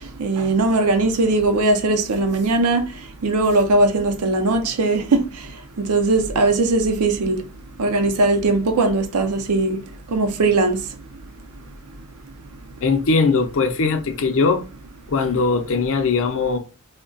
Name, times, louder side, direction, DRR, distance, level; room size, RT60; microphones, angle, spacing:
voice 1, 0.2-2.8 3.2-5.2 5.8-7.4 7.8-9.8 10.1-10.8, right 2 dB, 80° right, 0.6 m, -19 dB
voice 2, 12.8-14.6 15.1-16.6, left 4 dB, 60° left, 0.5 m, -20 dB
2.3 x 2.1 x 3.8 m
head